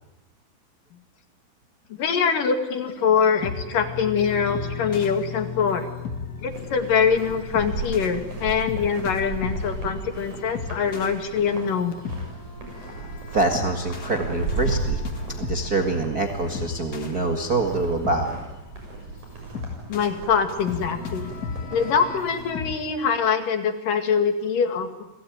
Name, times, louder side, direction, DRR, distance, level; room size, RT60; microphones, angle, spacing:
voice 1, 2.0-5.9 6.4-11.9 19.9-21.3 21.7-25.1, left 6 dB, 55° left, 7 dB, 3.1 m, -23 dB
sound 1, 2.9-22.7, left 5 dB, 75° left, 0.8 m, -36 dB
sound 2, 6.5-22.4, right 4 dB, 40° right, 7.7 m, -35 dB
voice 2, 13.3-18.3, right 2 dB, 65° right, 3 dB, 0.9 m, -25 dB
29.0 x 21.0 x 9.3 m, 0.97 s
omnidirectional pair, 5.2 m